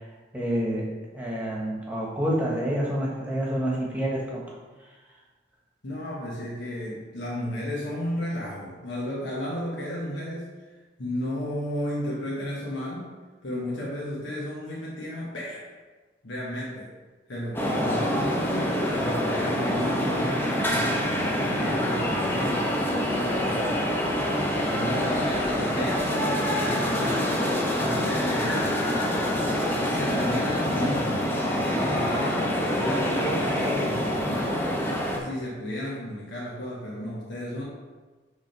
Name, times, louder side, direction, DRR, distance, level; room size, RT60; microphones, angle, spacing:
voice 1, 0.3-0.9 1.1-4.4 17.6-17.7, equal, 10° right, -5 dB, 1.2 m, -28 dB
voice 2, 5.8-10.5 11.0-13.1 13.4-15.7 16.2-16.9 17.3-23.8 24.7-27.4 27.7-28.9 29.9-32.4 32.8-34.7 35.2-37.6, left 1 dB, 90° left, -6 dB, 1.3 m, -33 dB
sound 1, 17.5-35.2, equal, 10° left, 0.6 m, -26 dB
4.9 x 3.6 x 5.3 m, 1.3 s
head